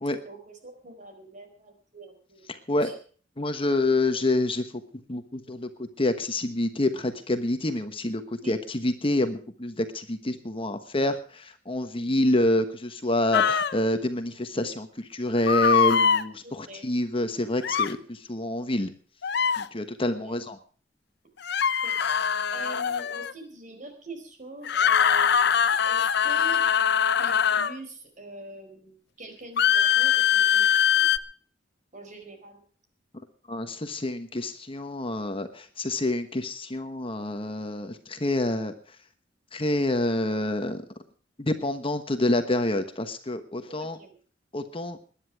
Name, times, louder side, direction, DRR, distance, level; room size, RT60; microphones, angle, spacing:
voice 1, 0.2-2.5 2.8-2.9 8.3-8.6 11.9-12.0 16.4-16.9 20.1-20.3 21.8-26.6 27.2-30.7 30.9-31.1 31.9-32.6 43.6-44.1, right 2 dB, 45° right, 6 dB, 4.5 m, -44 dB
voice 2, 2.5-2.9 3.4-4.7 5.1-18.9 19.6-20.6 33.5-38.7 39.5-40.8 41.4-44.0 44.5-45.0, left 1 dB, 30° left, 8 dB, 1.2 m, -27 dB
sound 1, 13.3-13.7 15.5-16.2 17.6-17.9 19.2-19.6 21.4-23.3 24.7-27.8 29.6-31.2, left 7 dB, 65° left, 0.8 m, -22 dB
21.0 x 10.5 x 4.8 m, 0.43 s
head